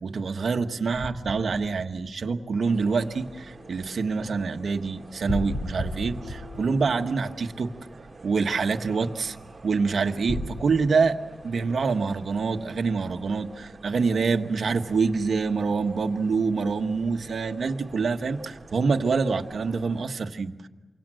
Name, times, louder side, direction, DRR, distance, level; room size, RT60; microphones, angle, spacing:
voice 1, 0.0-7.7 8.2-9.4 9.6-20.7, right 4 dB, 70° right, 7 dB, 1.3 m, -26 dB
sound 1, 0.9-2.8 5.3-7.8 10.3-10.5, left 1 dB, 30° left, 3.6 m, -34 dB
sound 2, 2.4-7.7, left 4 dB, 65° left, 5.1 m, -53 dB
sound 3, 2.6-20.1, right 3 dB, 30° right, 2.3 m, -47 dB
29.5 x 24.5 x 7.7 m, 1.1 s
wide cardioid pair, 115°, 0 cm